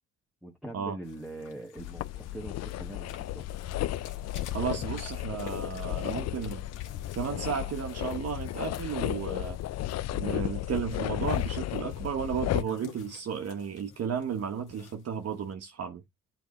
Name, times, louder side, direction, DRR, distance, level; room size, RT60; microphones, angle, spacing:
voice 1, 0.4-3.4, right 1 dB, ahead, 1.4 m, -42 dB
sound 1, 1.0-15.5, left 8 dB, 85° left, 2.1 m, -53 dB
sound 2, 1.8-12.6, left 14 dB, 60° left, 0.5 m, -33 dB
voice 2, 4.5-6.6 7.1-9.6 10.1-16.0, right 7 dB, 55° right, 1.1 m, -33 dB
8.1 x 4.1 x 3.1 m
cardioid pair, 90°, 30 cm